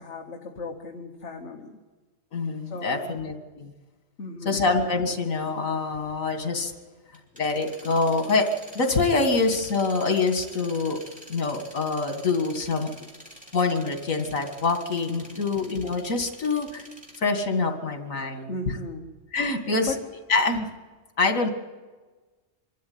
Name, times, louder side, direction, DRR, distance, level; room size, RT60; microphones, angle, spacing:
voice 1, 0.0-1.8 2.6-3.3 4.2-4.6 15.1-15.4 18.5-19.1 19.9-20.0, left 3 dB, 60° left, 3 dB, 1.7 m, -36 dB
voice 2, 2.3-3.7 4.4-6.7 7.3-8.5 8.7-11.0 11.3-12.9 13.5-16.9 17.2-18.5 19.3-19.9 20.3-20.7 21.2-21.5, left 3 dB, 80° left, 6 dB, 2.4 m, -25 dB
sound 1, 7.0-17.2, equal, 5° right, 3.5 m, -47 dB
25.0 x 13.0 x 9.5 m, 1.3 s
omnidirectional pair, 1.4 m